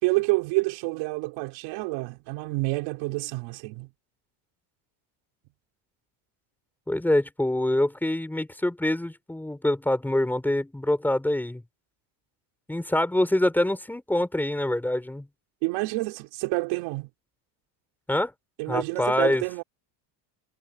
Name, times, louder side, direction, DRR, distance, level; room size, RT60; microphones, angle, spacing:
voice 1, 0.0-3.9 15.6-17.1 18.6-19.6, right 24 dB, 65° right, 4.5 m, -28 dB
voice 2, 6.9-11.6 12.7-15.3 18.1-18.3 18.7-19.6, left 1 dB, 5° left, 5.4 m, -25 dB
cardioid pair, 175°, 49 cm